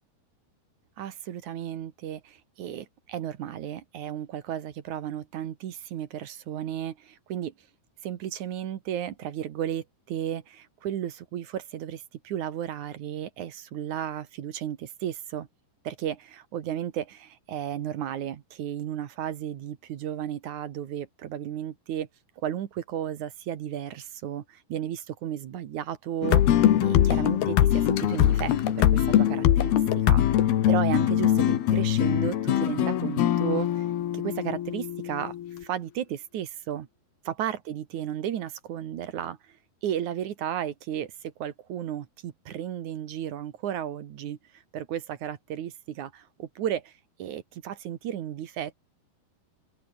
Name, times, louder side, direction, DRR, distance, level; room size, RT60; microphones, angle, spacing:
voice 1, 1.0-7.5 8.0-15.5 15.8-22.1 22.4-26.4 26.8-33.9 34.1-35.4 35.6-36.9 37.3-44.4 44.7-46.9 47.2-48.7, right 10 dB, 60° right, 2.4 m, -34 dB
sound 1, 26.2-35.6, left 11 dB, 70° left, 3.6 m, -23 dB
open air
omnidirectional pair, 4.7 m